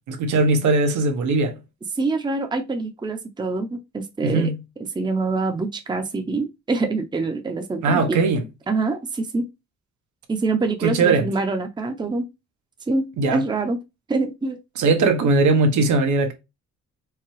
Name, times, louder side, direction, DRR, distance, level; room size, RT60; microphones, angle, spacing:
voice 1, 0.1-1.5 4.2-4.6 7.8-8.4 10.8-11.3 13.2-13.4 14.8-16.3, right 3 dB, 75° right, 1.0 m, -19 dB
voice 2, 1.9-4.5 4.9-8.2 8.7-9.4 10.3-12.2 12.9-13.8 14.1-14.6, right 3 dB, 15° right, 0.6 m, -25 dB
4.6 x 2.2 x 3.1 m
cardioid pair, 90°, 30 cm